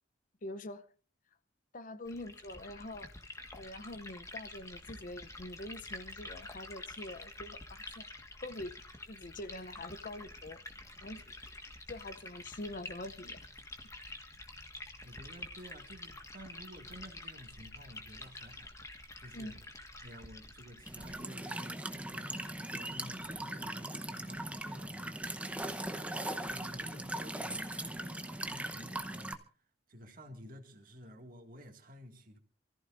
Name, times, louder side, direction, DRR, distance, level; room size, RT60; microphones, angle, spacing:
voice 1, 0.4-0.8 1.7-3.1 3.6-8.1 8.4-8.7 9.1-10.6 11.0-11.3 11.9-13.4 19.3-19.6, left 1 dB, 40° left, 0.6 m, -44 dB
Liquid, 2.1-21.2, left 2 dB, 15° left, 1.5 m, -48 dB
voice 2, 15.0-18.7 19.2-19.6 20.0-25.2 25.9-32.4, equal, 45° right, 2.0 m, -52 dB
Walk footsteps / Chirp tweet / Stream, 20.9-29.3, right 1 dB, 5° right, 0.8 m, -39 dB
28.0 x 14.5 x 2.5 m
head